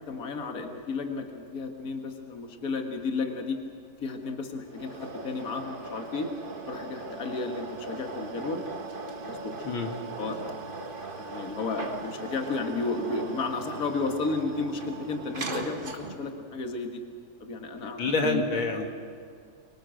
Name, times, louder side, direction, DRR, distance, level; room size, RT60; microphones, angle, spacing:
voice 1, 0.1-3.6 4.0-6.3 6.7-8.7 9.2-9.6 10.2-10.4 11.2-17.0 17.4-18.4 18.7-18.8, left 3 dB, 45° left, 3 dB, 2.2 m, -33 dB
sound 1, 4.7-16.4, right 3 dB, 30° right, 1.5 m, -39 dB
voice 2, 9.6-10.0 18.0-18.8, left 3 dB, 85° left, 3 dB, 2.8 m, -27 dB
25.0 x 24.5 x 6.6 m, 2.3 s
omnidirectional pair, 2.2 m